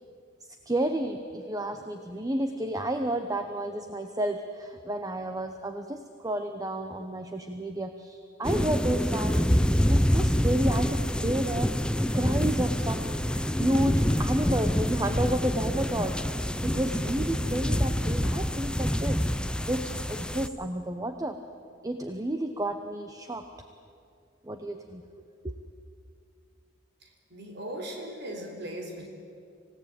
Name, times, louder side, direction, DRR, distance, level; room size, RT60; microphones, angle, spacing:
voice 1, 0.7-11.7 12.1-16.2 16.6-19.2 19.6-21.4 21.8-23.4 24.4-25.0 25.4-25.5, right 1 dB, 20° right, 7 dB, 1.0 m, -31 dB
sound 1, 8.4-20.5, equal, 5° left, 0.6 m, -26 dB
voice 2, 27.0-29.1, right 1 dB, 60° right, 3 dB, 4.2 m, -38 dB
26.5 x 17.0 x 8.8 m, 2.4 s
head